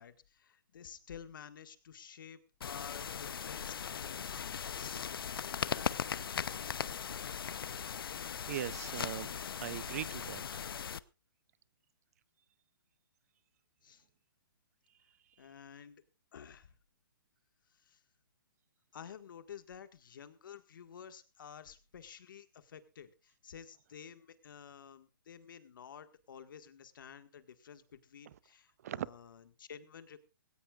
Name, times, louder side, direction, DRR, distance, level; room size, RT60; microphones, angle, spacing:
voice 1, 0.0-6.0 13.8-14.0 15.4-16.0 16.3-16.7 17.7-18.0 18.9-30.2, left 8 dB, 60° left, 1.8 m, -52 dB
sound 1, 2.6-11.0, left 7 dB, 80° left, 0.7 m, -39 dB
voice 2, 8.5-10.6 28.8-29.1, right 11 dB, 40° right, 0.6 m, -40 dB
19.5 x 17.5 x 2.4 m
hypercardioid pair, 160°, 12 cm